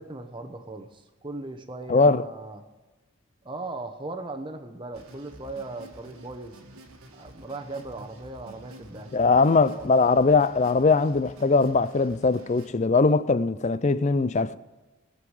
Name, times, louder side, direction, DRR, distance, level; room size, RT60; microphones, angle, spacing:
voice 1, 0.0-2.6 3.4-6.6 7.1-9.5 9.7-10.0, right 2 dB, 20° right, 1.0 m, -38 dB
voice 2, 1.9-2.2 9.1-14.6, left 4 dB, 30° left, 0.4 m, -21 dB
sound 1, 4.9-12.7, right 1 dB, 85° right, 1.7 m, -49 dB
21.5 x 7.1 x 4.8 m
head